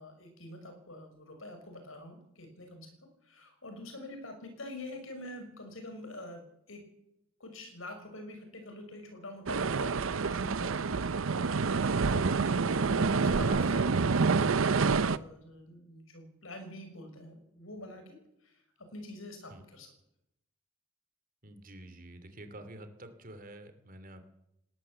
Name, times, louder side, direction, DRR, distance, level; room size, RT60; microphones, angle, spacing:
voice 1, 0.0-2.9 3.2-6.8 7.4-10.0 10.3-11.5 11.9-18.5 18.9-19.9, left 1 dB, 80° left, 6 dB, 6.0 m, -46 dB
sound 1, 9.5-15.2, right 4 dB, 85° right, 0.7 m, -27 dB
voice 2, 21.4-24.3, right 1 dB, 45° right, 9 dB, 2.8 m, -48 dB
19.5 x 18.5 x 7.8 m, 0.84 s
head